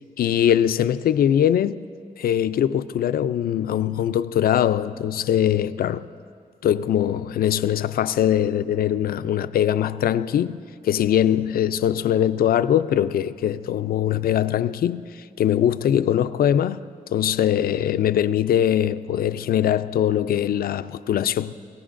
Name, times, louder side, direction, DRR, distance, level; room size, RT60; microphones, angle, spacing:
voice 1, 0.2-1.8 2.2-6.1 6.6-10.6 10.8-16.8 17.1-21.5, left 10 dB, 80° left, 0.4 m, -22 dB
26.5 x 17.5 x 2.5 m
cardioid pair, 90°, 15 cm